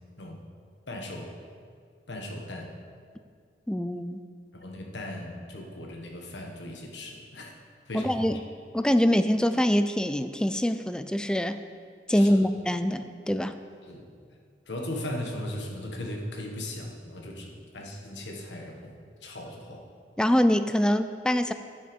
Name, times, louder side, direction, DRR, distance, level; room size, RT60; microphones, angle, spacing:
voice 1, 0.9-1.3 2.1-2.7 4.5-7.6 7.9-8.4 12.1-12.4 13.8-14.1 14.7-18.9 19.2-19.8, left 1 dB, 85° left, 1 dB, 1.4 m, -38 dB
voice 2, 3.7-4.2 7.9-8.4 8.7-11.6 12.1-13.5 20.2-21.5, equal, 5° left, 10 dB, 0.3 m, -24 dB
9.5 x 7.6 x 5.3 m, 2.2 s
head